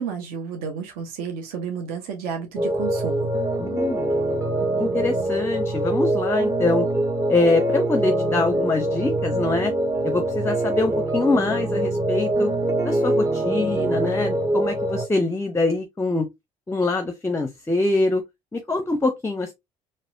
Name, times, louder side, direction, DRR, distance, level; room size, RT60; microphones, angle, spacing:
voice 1, 0.0-3.3, right 6 dB, 60° right, 1.0 m, -31 dB
sound 1, 2.6-15.1, right 1 dB, 20° right, 0.7 m, -24 dB
voice 2, 3.6-4.1 4.8-6.9 7.3-9.7 10.0-12.5 12.8-16.3 16.7-18.2 18.5-19.5, left 3 dB, 15° left, 0.6 m, -24 dB
4.1 x 2.5 x 2.6 m
figure-of-eight pair, 55°, 18 cm